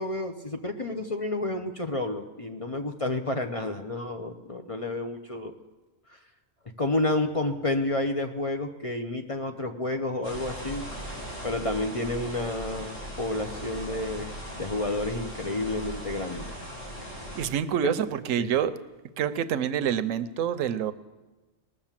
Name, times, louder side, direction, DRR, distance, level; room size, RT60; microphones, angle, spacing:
voice 1, 0.0-5.5 6.8-10.8 11.4-14.3 14.6-16.6 17.8-17.9 18.4-18.5, left 2 dB, 35° left, 4 dB, 0.6 m, -30 dB
sound 1, 10.2-17.5, equal, 75° left, 5.6 m, -38 dB
voice 2, 17.3-18.7 19.2-20.9, right 9 dB, 85° right, 13 dB, 1.0 m, -27 dB
19.5 x 6.7 x 7.4 m, 1.2 s
omnidirectional pair, 1.3 m